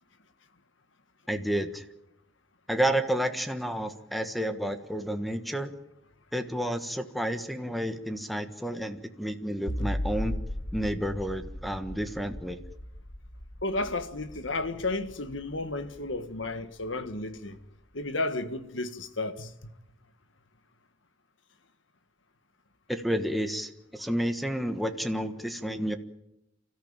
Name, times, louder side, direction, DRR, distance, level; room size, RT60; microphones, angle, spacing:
voice 1, 1.3-1.8 2.7-5.7 6.3-10.4 10.7-12.6 22.9-26.0, equal, ahead, 1.4 m, -30 dB
sound 1, 9.7-16.9, left 1 dB, 65° left, 1.8 m, -37 dB
voice 2, 13.6-17.6 17.9-19.7, left 2 dB, 80° left, 1.8 m, -33 dB
29.5 x 14.0 x 9.0 m
head